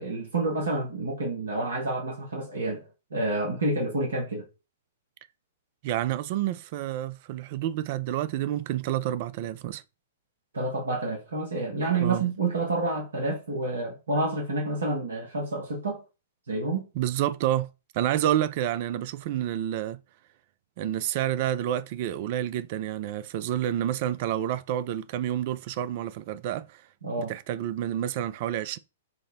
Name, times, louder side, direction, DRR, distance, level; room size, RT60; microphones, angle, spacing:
voice 1, 0.0-2.8 3.1-4.5 10.5-16.0 16.5-16.9 27.0-27.3, right 2 dB, 75° right, 1.0 m, -29 dB
voice 2, 5.8-9.8 12.0-12.2 17.0-17.7 17.9-20.0 20.8-26.8 27.2-28.8, right 12 dB, 45° right, 0.4 m, -29 dB
4.2 x 2.1 x 4.0 m
figure-of-eight pair, 110°, 0 cm